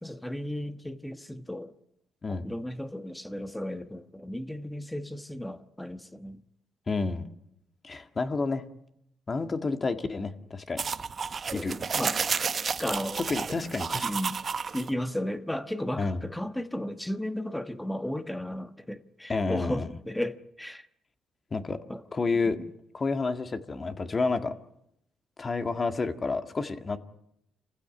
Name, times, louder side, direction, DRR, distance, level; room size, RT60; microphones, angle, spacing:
voice 1, 0.0-1.7 2.3-6.4 11.4-12.2 12.8-13.2 14.0-14.4 14.7-20.9 21.9-22.0, left 1 dB, 5° left, 1.3 m, -34 dB
voice 2, 6.9-7.3 7.8-8.6 9.3-10.8 11.5-11.7 13.2-14.1 16.0-16.2 19.3-19.9 21.5-21.8 22.1-22.6 22.9-24.6 25.4-27.0, left 3 dB, 35° left, 1.9 m, -29 dB
sound 1, 10.8-14.9, right 5 dB, 45° right, 0.9 m, -31 dB
27.0 x 15.5 x 9.7 m
cardioid pair, 90°, 0 cm